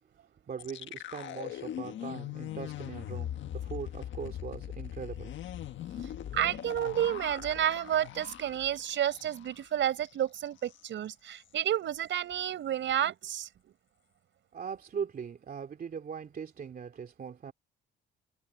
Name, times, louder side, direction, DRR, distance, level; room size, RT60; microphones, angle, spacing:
voice 1, 0.5-5.3 14.5-17.5, right 7 dB, 45° right, 2.6 m, -40 dB
sound 1, 0.6-9.6 9.9-10.1 10.5-10.8, left 11 dB, 70° left, 1.5 m, -41 dB
voice 2, 6.3-13.5, right 11 dB, 70° right, 5.3 m, -30 dB
cardioid pair, 90°, 20 cm